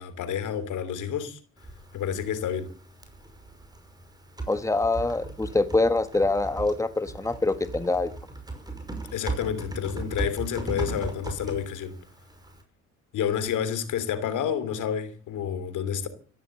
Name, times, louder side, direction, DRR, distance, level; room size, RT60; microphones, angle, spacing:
voice 1, 0.0-1.4 1.9-2.7 9.1-11.9 13.1-16.1, left 8 dB, 80° left, 3.0 m, -29 dB
Typing, 1.6-12.6, right 3 dB, 15° right, 5.6 m, -38 dB
voice 2, 4.5-8.1, left 2 dB, 10° left, 1.5 m, -25 dB
15.0 x 12.0 x 7.7 m
cardioid pair, 90°, 30 cm